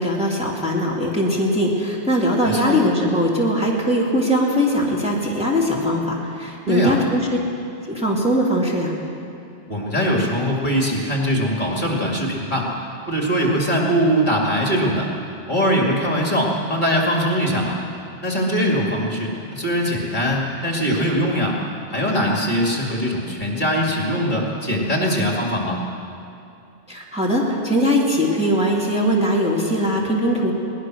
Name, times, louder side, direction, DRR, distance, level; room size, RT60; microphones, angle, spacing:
voice 1, 0.0-7.4 7.9-8.9 26.9-30.5, equal, 5° right, -4 dB, 3.0 m, -20 dB
voice 2, 2.5-2.8 6.7-7.0 9.7-12.7 13.1-15.1 15.5-17.8 18.2-21.6 21.9-25.8, equal, 45° left, -2 dB, 2.8 m, -21 dB
22.5 x 18.5 x 6.4 m, 2.6 s
omnidirectional pair, 1.1 m